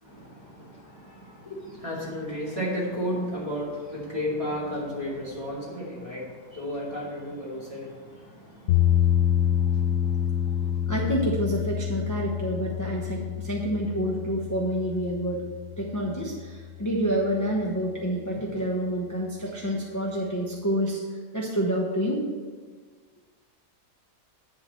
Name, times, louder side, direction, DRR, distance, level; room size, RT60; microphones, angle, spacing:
voice 1, 0.0-10.8, equal, 20° right, -6 dB, 2.6 m, -34 dB
sound 1, 8.7-16.8, left 10 dB, 80° left, 1.3 m, -27 dB
voice 2, 10.9-15.4 15.8-21.0 21.3-22.3, equal, 15° left, -3 dB, 0.7 m, -28 dB
10.5 x 3.8 x 7.5 m, 1.5 s
omnidirectional pair, 1.8 m